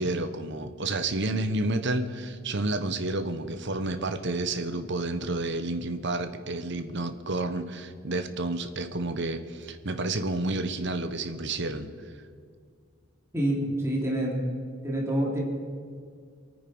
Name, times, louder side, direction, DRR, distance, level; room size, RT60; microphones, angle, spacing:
voice 1, 0.0-11.9, right 2 dB, 60° right, 8 dB, 1.2 m, -30 dB
voice 2, 13.3-14.5 14.8-15.4, right 1 dB, 15° right, -3 dB, 3.4 m, -27 dB
28.0 x 9.4 x 5.5 m, 2.1 s
head